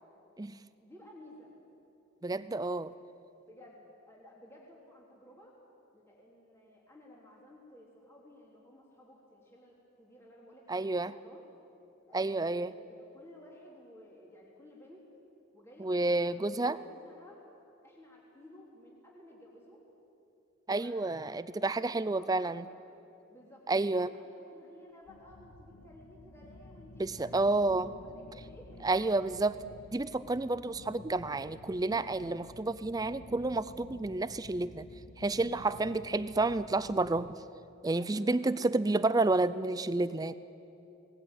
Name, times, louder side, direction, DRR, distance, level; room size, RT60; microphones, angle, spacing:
voice 1, 0.8-1.5 3.5-5.5 5.9-11.5 12.1-15.0 15.5-17.4 17.8-19.8 20.8-22.8 23.3-27.6 28.0-29.3 38.0-38.6, left 1 dB, 10° left, -4 dB, 3.1 m, -55 dB
voice 2, 2.2-2.9 10.7-11.1 12.1-12.7 15.8-16.8 20.7-22.6 23.7-24.1 27.0-27.9 28.8-29.5 29.9-34.9 35.2-37.4 37.8-40.3, right 2 dB, 20° right, 15 dB, 0.4 m, -30 dB
sound 1, 25.1-37.3, left 1 dB, 65° left, 1.0 m, -52 dB
20.0 x 19.0 x 9.1 m, 2.8 s
head